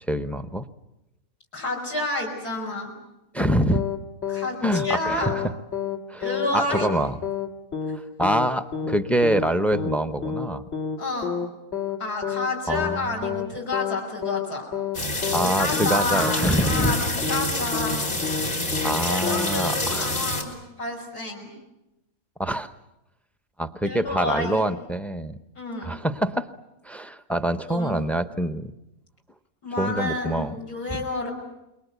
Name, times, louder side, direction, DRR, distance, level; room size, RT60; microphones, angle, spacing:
voice 1, 0.1-0.6 3.3-3.8 4.6-5.4 6.1-6.3 6.5-7.2 8.2-10.6 12.7-13.2 15.3-17.0 18.8-20.2 22.4-22.7 23.6-25.4 25.8-26.5 26.8-28.7 29.8-30.6 30.9-31.0, right 1 dB, ahead, 11 dB, 0.5 m, -25 dB
voice 2, 1.5-2.9 4.3-5.4 6.2-6.9 11.0-11.3 12.0-14.7 15.4-18.1 19.1-21.5 23.8-24.6 25.5-25.9 27.7-28.1 29.6-31.3, left 2 dB, 75° left, -1 dB, 6.3 m, -29 dB
sound 1, 3.7-4.5 4.7-5.0 5.2-5.5 5.7-6.0 6.2-6.5 6.7-7.0 7.2-7.5 7.7-8.0 8.2-8.5 8.7-9.0 9.2-9.5 9.7-10.0 10.2-10.5 10.7-11.0 11.2-11.5 11.7-12.0 12.2-12.5 12.7-13.0 13.2-13.5 13.7-14.0 14.2-14.5 14.7-15.0 15.2-15.5 15.7-16.0 16.2-16.5 16.7-17.0 17.2-17.5 17.7-18.0 18.2-18.5 18.7-19.0 19.2-19.5, left 7 dB, 45° left, 2.2 m, -29 dB
sound 2, 14.9-20.4, left 2 dB, 60° left, 4.1 m, -27 dB
28.5 x 23.0 x 8.1 m, 0.91 s
omnidirectional pair, 1.6 m